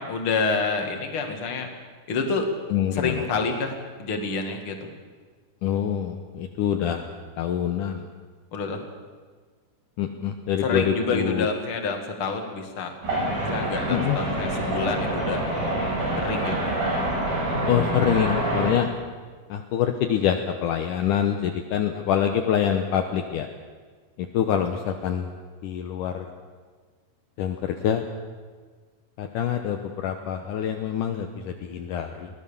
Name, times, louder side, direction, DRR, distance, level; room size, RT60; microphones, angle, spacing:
voice 1, 0.0-1.7 2.1-2.5 2.9-3.7 4.0-4.8 8.5-8.8 10.6-12.9 13.4-15.4 16.2-16.7, left 4 dB, 40° left, 4 dB, 2.7 m, -27 dB
voice 2, 2.7-3.2 5.6-7.1 7.4-8.1 10.0-11.5 13.9-14.2 17.7-18.9 19.5-23.5 24.2-25.3 25.6-26.3 27.4-28.0 29.2-32.3, left 9 dB, 70° left, 5 dB, 2.4 m, -25 dB
sound 1, 13.0-18.7, right 1 dB, 80° right, 8.3 m, -26 dB
23.0 x 17.5 x 7.2 m, 1.5 s
omnidirectional pair, 4.1 m